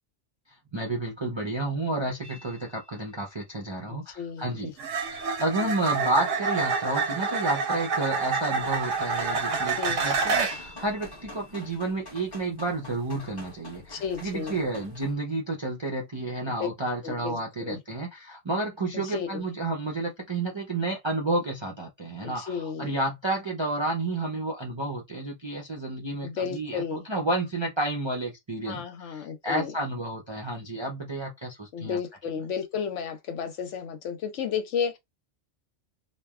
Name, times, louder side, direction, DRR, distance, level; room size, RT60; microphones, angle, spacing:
voice 1, 0.7-4.7 5.1-28.8 29.1-32.0, right 2 dB, 40° right, 0.4 m, -31 dB
sound 1, 2.2-2.4 4.8-10.8 14.4-14.7, right 5 dB, 85° right, 1.1 m, -28 dB
voice 2, 4.2-4.7 9.8-10.0 13.9-14.6 16.5-16.7 17.0-17.8 18.9-19.4 22.2-22.9 26.2-27.0 28.7-29.7 31.7-35.0, left 7 dB, 75° left, 1.0 m, -32 dB
sound 2, 8.6-15.1, left 2 dB, 20° left, 0.8 m, -46 dB
3.1 x 2.1 x 2.3 m
omnidirectional pair, 1.3 m